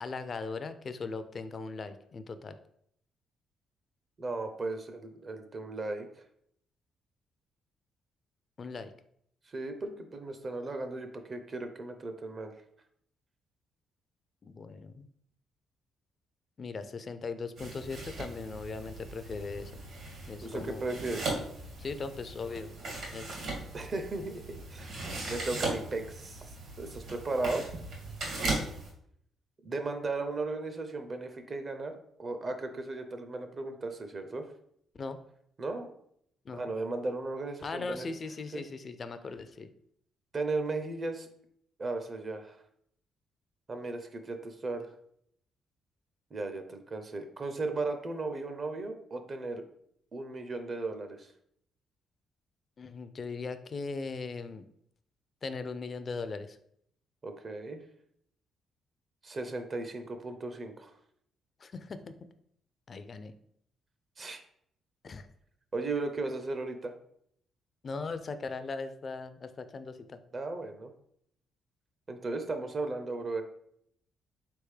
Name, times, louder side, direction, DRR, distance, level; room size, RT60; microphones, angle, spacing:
voice 1, 0.0-2.6 8.6-8.9 14.4-15.1 16.6-19.8 20.2-20.8 21.8-22.7 23.1-23.3 28.4-28.6 34.9-35.2 36.5-36.7 37.6-39.7 52.8-54.6 55.4-56.6 61.6-62.1 62.9-63.3 65.0-65.3 67.8-70.2, left 4 dB, 40° left, 11 dB, 0.3 m, -39 dB
voice 2, 4.2-6.1 9.5-12.5 20.4-21.2 23.7-25.0 25.3-27.6 29.6-34.5 35.6-35.9 36.5-38.1 38.5-38.6 40.3-41.3 41.8-42.6 43.7-44.9 46.3-49.6 50.1-51.3 57.2-57.8 59.2-60.9 64.2-64.4 65.7-66.9 70.3-70.9 72.1-73.4, right 3 dB, 40° right, 7 dB, 0.5 m, -36 dB
sound 1, 17.6-28.9, right 2 dB, 75° right, 1.8 m, -38 dB
4.0 x 3.4 x 3.2 m, 0.69 s
cardioid pair, 90°, 0 cm